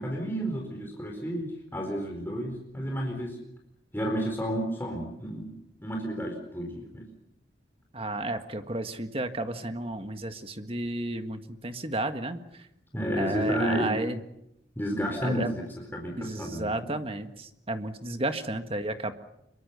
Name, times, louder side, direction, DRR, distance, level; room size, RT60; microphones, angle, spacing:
voice 1, 0.0-3.4 3.9-7.0 12.9-14.0 14.8-15.6 15.9-16.9, equal, 10° left, 1 dB, 4.3 m, -31 dB
voice 2, 7.9-12.7 13.1-14.2 15.2-15.5 16.2-19.1, right 2 dB, 30° right, 7 dB, 1.7 m, -32 dB
25.5 x 23.0 x 7.0 m, 0.82 s
head